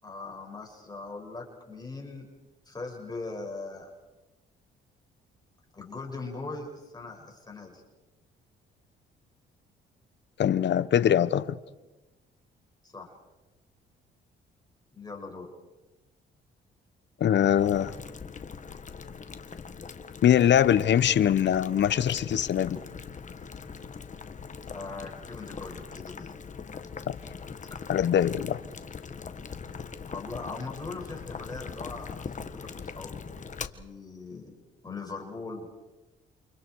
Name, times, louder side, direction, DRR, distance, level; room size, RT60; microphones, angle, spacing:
voice 1, 0.0-2.3 2.6-3.9 5.7-7.8 12.8-13.2 14.9-15.5 24.7-26.3 30.1-33.3 33.7-34.5 34.8-35.7, left 3 dB, 20° left, 6.4 m, -40 dB
voice 2, 10.4-11.5 17.2-17.9 20.2-22.8 27.1-27.2 27.9-28.6, left 10 dB, 65° left, 1.1 m, -22 dB
Boiling, 17.6-33.7, left 5 dB, 40° left, 1.6 m, -41 dB
29.5 x 28.5 x 4.8 m
cardioid pair, 90°, 20 cm